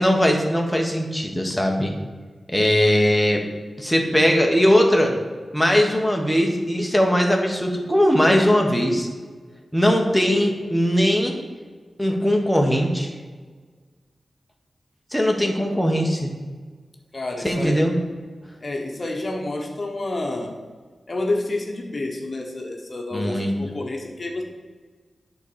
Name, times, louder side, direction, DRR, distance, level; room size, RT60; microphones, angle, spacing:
voice 1, 0.0-1.9 2.5-3.4 3.8-5.2 5.5-9.1 9.7-11.3 12.0-13.1 15.1-16.3 17.4-17.9 23.1-23.5, equal, ahead, 1 dB, 1.4 m, -20 dB
voice 2, 17.1-17.8 18.6-20.6 21.1-24.4, left 2 dB, 45° left, 2 dB, 1.1 m, -29 dB
8.5 x 4.1 x 6.8 m, 1.5 s
cardioid pair, 65°, 0 cm